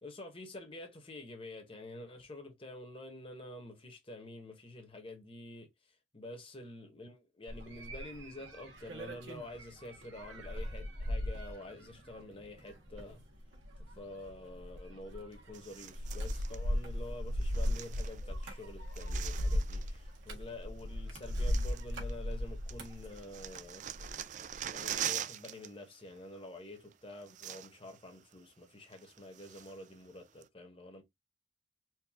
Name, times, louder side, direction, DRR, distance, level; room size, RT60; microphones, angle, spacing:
voice 1, 0.0-13.2 13.8-23.9 24.7-31.0, left 1 dB, 30° left, 1.2 m, -48 dB
sound 1, 7.5-24.2 24.5-25.0, equal, 90° right, 1.6 m, -38 dB
sound 2, 15.5-16.6 17.4-18.5 18.7-20.0 20.8-20.9 21.2-22.4 22.7-25.7 25.9-26.2 26.9-27.0 27.2-28.0 28.3-28.4 28.9-29.9 30.4-30.5, right 10 dB, 40° right, 0.3 m, -43 dB
4.5 x 2.6 x 3.6 m
head